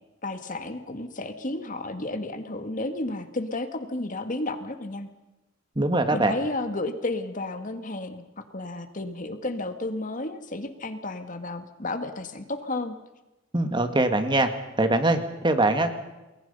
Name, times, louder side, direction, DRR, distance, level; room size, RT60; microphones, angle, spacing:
voice 1, 0.2-5.1 6.1-13.0, left 2 dB, 40° left, 8 dB, 2.0 m, -32 dB
voice 2, 5.8-6.3 13.5-14.5 14.8-16.0, right 2 dB, 25° right, 7 dB, 2.1 m, -22 dB
29.5 x 21.5 x 5.6 m, 1.0 s
head